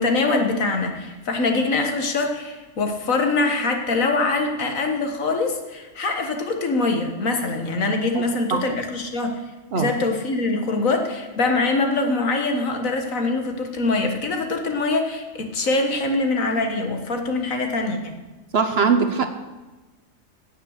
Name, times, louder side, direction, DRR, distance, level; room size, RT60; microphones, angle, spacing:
voice 1, 0.0-9.4 9.7-18.1, left 3 dB, 70° left, 4 dB, 1.9 m, -23 dB
voice 2, 18.5-19.3, right 5 dB, 50° right, 8 dB, 1.0 m, -20 dB
16.5 x 6.4 x 6.5 m, 1.2 s
omnidirectional pair, 1.5 m